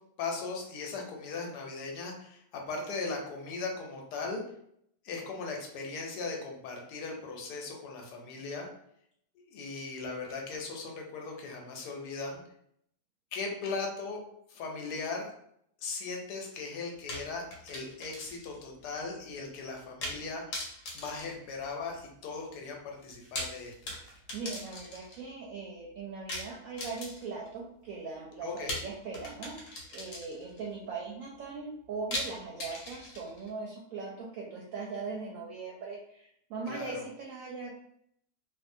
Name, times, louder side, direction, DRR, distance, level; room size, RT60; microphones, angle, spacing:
voice 1, 0.2-4.4 5.0-8.7 9.4-12.4 13.3-14.2 14.5-15.3 15.8-20.7 20.9-23.9 28.4-28.8 36.7-36.9, left 4 dB, 90° left, 1 dB, 1.2 m, -38 dB
sound 1, 17.1-18.6 18.9-19.0 20.0-20.2 20.5-22.1 23.1-25.2 26.3-27.5 28.7-30.6 32.1-33.5, left 1 dB, 60° left, 1.1 m, -40 dB
voice 2, 24.3-37.7, right 4 dB, 70° right, -2 dB, 0.9 m, -40 dB
2.6 x 2.4 x 2.5 m, 0.71 s
omnidirectional pair, 1.7 m